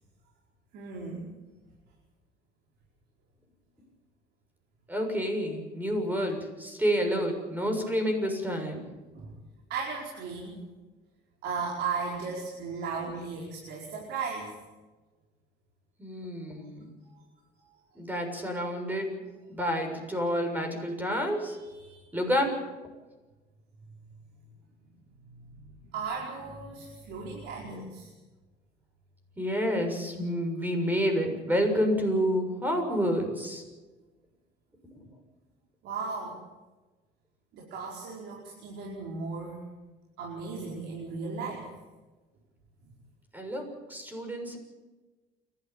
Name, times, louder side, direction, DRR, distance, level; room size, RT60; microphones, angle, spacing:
voice 1, 0.7-1.3 9.1-9.3 9.7-10.6 11.4-14.5 17.0-17.2 17.6-17.7 21.6-22.0 25.9-28.1 35.8-36.4 37.5-39.6 40.2-41.7, right 4 dB, 80° right, -2 dB, 5.1 m, -36 dB
voice 2, 4.9-8.9 16.0-16.9 18.0-19.2 19.5-21.6 22.1-22.5 29.4-33.6 34.9-35.0 43.3-44.6, equal, 10° right, 4 dB, 7.0 m, -29 dB
29.5 x 12.5 x 8.9 m, 1.2 s
cardioid pair, 110°, 17 cm